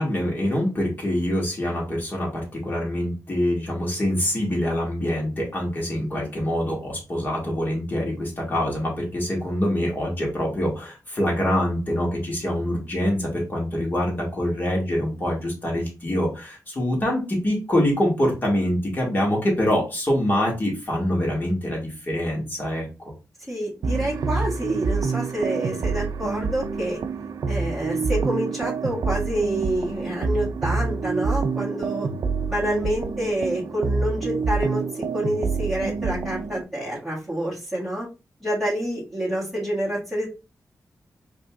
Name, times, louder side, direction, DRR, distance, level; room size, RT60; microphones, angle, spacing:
voice 1, 0.0-22.9, left 1 dB, 30° left, -2 dB, 1.9 m, -25 dB
voice 2, 23.5-27.0 27.5-32.1 32.5-34.8 35.1-38.1 38.4-40.3, right 1 dB, ahead, -10 dB, 1.8 m, -27 dB
sound 1, 23.8-36.6, right 4 dB, 70° right, 0.5 m, -27 dB
5.1 x 3.1 x 2.4 m, 0.29 s
wide cardioid pair, 135°, 6 cm